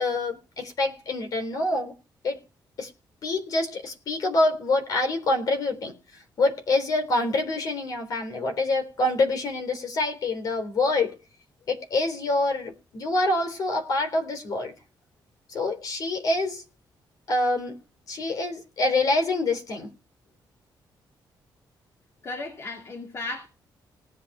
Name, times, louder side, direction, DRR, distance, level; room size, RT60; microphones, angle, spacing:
voice 1, 0.0-1.9 2.2-2.4 2.8-2.9 3.2-5.9 6.4-11.2 11.7-14.7 15.5-16.6 17.3-17.8 18.1-19.9, left 2 dB, 55° left, 3.6 m, -26 dB
voice 2, 22.2-23.5, left 2 dB, 35° left, 2.4 m, -35 dB
18.5 x 8.5 x 4.8 m
wide cardioid pair, 170°, 8 cm